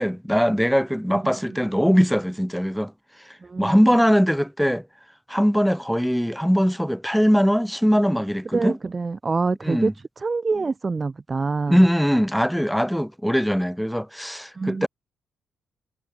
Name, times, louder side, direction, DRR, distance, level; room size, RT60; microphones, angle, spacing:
voice 1, 0.0-2.9 3.6-4.9 5.3-8.8 9.6-9.9 11.7-14.9, equal, ahead, 5.8 m, -21 dB
voice 2, 3.4-3.8 8.5-9.9 10.2-11.8 14.6-14.9, right 4 dB, 25° right, 4.5 m, -25 dB
cardioid pair, 120°, 0 cm